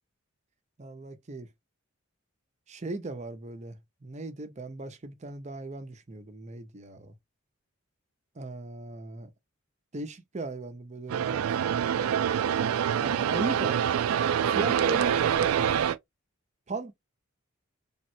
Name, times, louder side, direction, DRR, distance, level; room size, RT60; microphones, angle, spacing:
voice 1, 0.8-1.5 2.7-7.1 8.4-9.3 9.9-11.4 13.0-13.8 14.4-15.7 16.7-16.9, right 3 dB, 35° right, 0.6 m, -37 dB
sound 1, 11.1-16.0, right 8 dB, 90° right, 0.3 m, -26 dB
3.5 x 2.1 x 2.6 m
head